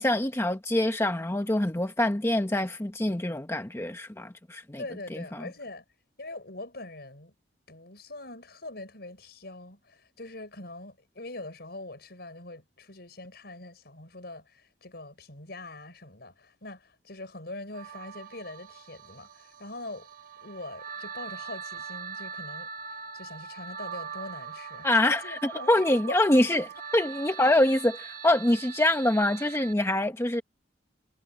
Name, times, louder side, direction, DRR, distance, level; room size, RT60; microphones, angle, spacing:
voice 1, 0.0-4.8 5.1-5.5 24.8-30.4, left 1 dB, 15° left, 1.0 m, -25 dB
voice 2, 4.8-5.8 6.2-7.3 7.7-20.1 20.4-22.7 23.1-26.2, left 2 dB, 65° left, 6.0 m, -42 dB
sound 1, 17.7-29.7, right 6 dB, 55° right, 1.8 m, -42 dB
head